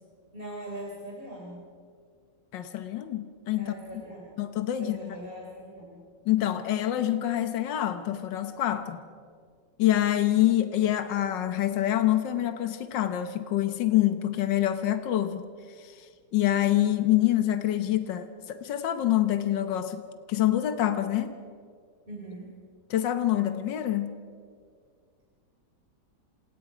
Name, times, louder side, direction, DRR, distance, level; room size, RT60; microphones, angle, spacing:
voice 1, 0.3-1.6 3.6-4.4 4.8-6.0 22.1-22.5, right 1 dB, 30° right, -3 dB, 3.8 m, -41 dB
voice 2, 2.5-3.7 4.4-5.2 6.3-9.0 9.8-15.4 15.8-16.1 16.3-20.0 20.3-21.3 22.9-24.2, left 13 dB, 80° left, 8 dB, 1.7 m, -26 dB
29.0 x 27.0 x 5.0 m, 2.1 s
omnidirectional pair, 1.9 m